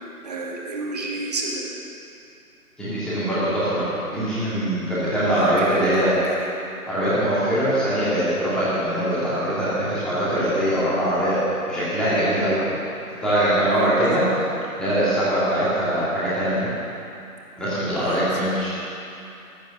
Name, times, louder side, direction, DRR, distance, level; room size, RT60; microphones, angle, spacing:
voice 1, 0.2-1.7 5.4-6.5 13.7-14.2 17.9-18.2, right 2 dB, 25° right, -1 dB, 1.8 m, -30 dB
voice 2, 2.8-3.8 4.1-6.1 6.9-11.4 11.7-12.6 13.2-14.2 14.8-16.6 17.6-18.7, right 1 dB, ahead, -12 dB, 2.2 m, -22 dB
16.0 x 12.5 x 6.5 m, 2.7 s
figure-of-eight pair, 160°, 45 cm